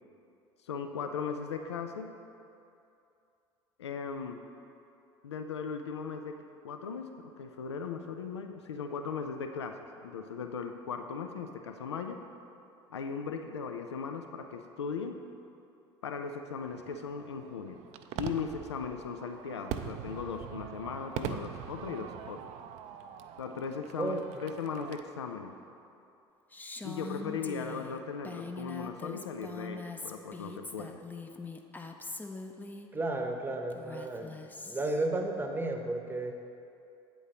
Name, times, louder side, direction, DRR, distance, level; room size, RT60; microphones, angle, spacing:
voice 1, 0.6-2.1 3.8-4.4 5.2-12.2 12.9-15.2 16.0-17.8 18.2-22.5 23.4-25.5 26.8-31.0, left 5 dB, 90° left, 6 dB, 0.4 m, -38 dB
Fireworks, 16.7-25.0, right 10 dB, 55° right, 0.4 m, -42 dB
Female speech woman speaking, 26.5-32.9 33.7-35.1, left 3 dB, 15° left, 0.5 m, -42 dB
voice 2, 32.9-34.4 34.7-36.3, right 2 dB, 15° right, 4 dB, 0.8 m, -33 dB
8.4 x 8.0 x 2.9 m, 2.6 s
hypercardioid pair, 70°, 14 cm